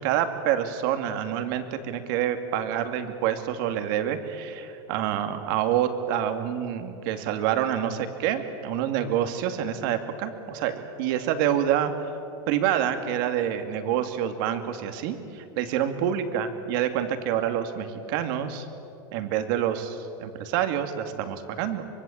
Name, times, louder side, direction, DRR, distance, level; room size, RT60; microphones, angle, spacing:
voice 1, 0.0-12.1 12.5-18.7 19.1-21.8, right 10 dB, 60° right, 8 dB, 2.4 m, -27 dB
25.0 x 23.0 x 8.7 m, 2.7 s
supercardioid pair, 150°, 13 cm